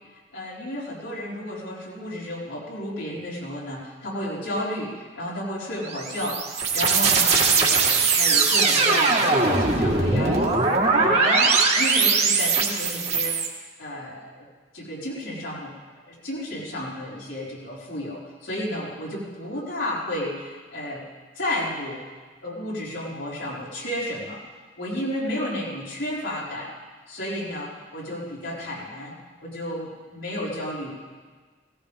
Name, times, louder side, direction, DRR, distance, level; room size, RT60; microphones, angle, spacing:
voice 1, 0.3-6.4 6.7-10.5 10.9-13.4 13.8-14.4 14.7-15.7 16.0-21.0 21.3-22.0 22.4-24.4 24.8-26.8 27.1-29.1 29.4-31.1, left 1 dB, 85° left, -7 dB, 5.1 m, -32 dB
sound 1, 5.8-13.5, right 4 dB, 35° right, 1.8 m, -20 dB
17.5 x 17.5 x 3.7 m, 1.4 s
head